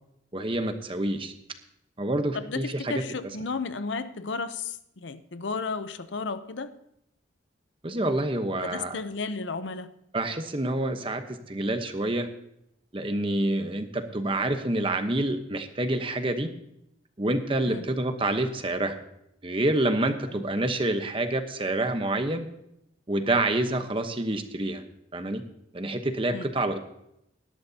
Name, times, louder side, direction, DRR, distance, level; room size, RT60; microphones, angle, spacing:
voice 1, 0.3-1.3 2.0-3.0 7.8-9.0 10.1-12.3 12.9-16.5 17.2-19.0 19.4-22.5 23.1-24.8 25.1-25.4 25.7-26.8, right 1 dB, 30° right, 7 dB, 1.0 m, -27 dB
voice 2, 2.3-6.7 8.6-9.9 17.7-17.9 26.3-26.5, left 4 dB, 75° left, 12 dB, 0.7 m, -33 dB
18.5 x 12.0 x 2.8 m, 0.79 s
head